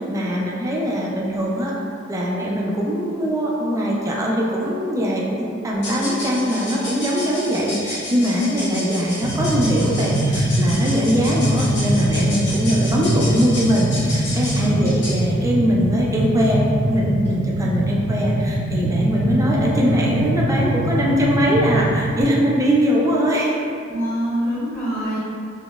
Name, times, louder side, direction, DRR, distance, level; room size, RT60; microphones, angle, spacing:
voice 1, 0.0-1.7 2.1-23.6, equal, 15° right, -4 dB, 0.3 m, -21 dB
sound 1, 5.8-15.3, left 1 dB, 60° left, 0.9 m, -32 dB
sound 2, 9.2-22.2, right 1 dB, 80° right, 0.6 m, -22 dB
voice 2, 14.6-14.9 23.9-25.2, right 1 dB, 10° left, -11 dB, 0.9 m, -24 dB
3.7 x 2.1 x 2.3 m, 2.4 s
head